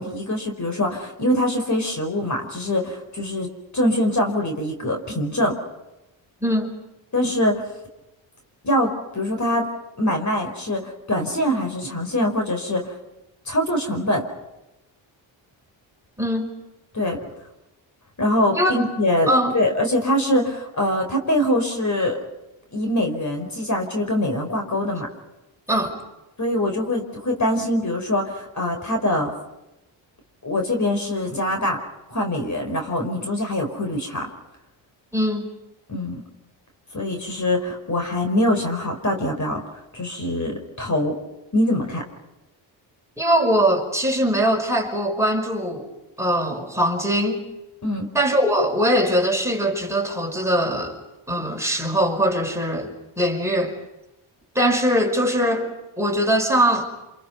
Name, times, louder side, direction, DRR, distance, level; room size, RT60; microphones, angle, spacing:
voice 1, 0.0-5.6 7.1-7.6 8.6-9.7 10.0-12.9 13.5-14.3 16.9-17.3 18.2-22.2 22.7-25.1 26.4-29.4 30.4-31.8 32.1-34.3 35.9-36.2 36.9-39.6 39.9-41.2 41.5-42.0 47.8-48.1, left 1 dB, 35° left, 3 dB, 5.1 m, -23 dB
voice 2, 6.4-6.8 16.2-16.5 18.5-18.7 19.3-19.6 25.7-25.9 35.1-35.5 43.2-45.9 46.2-47.4 48.1-51.0 51.3-53.7 54.6-56.9, equal, 5° right, 1 dB, 5.4 m, -21 dB
28.5 x 27.0 x 5.6 m, 0.94 s
cardioid pair, 75°, 48 cm